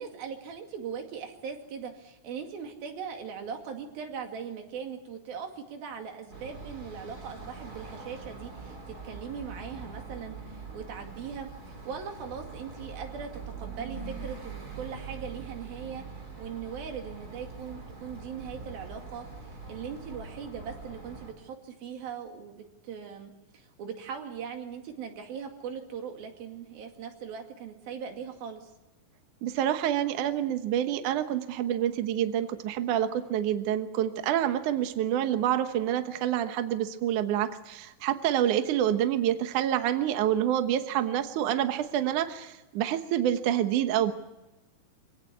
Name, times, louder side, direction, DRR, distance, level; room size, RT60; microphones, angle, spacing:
voice 1, 0.0-13.3 13.6-16.0 16.4-19.3 19.7-28.7, right 7 dB, 90° right, 4 dB, 4.1 m, -40 dB
sound 1, 6.3-21.3, right 4 dB, 25° right, 3.4 m, -43 dB
voice 2, 29.4-44.1, right 11 dB, 65° right, 8 dB, 2.4 m, -27 dB
25.0 x 17.5 x 8.3 m, 1.0 s
omnidirectional pair, 4.1 m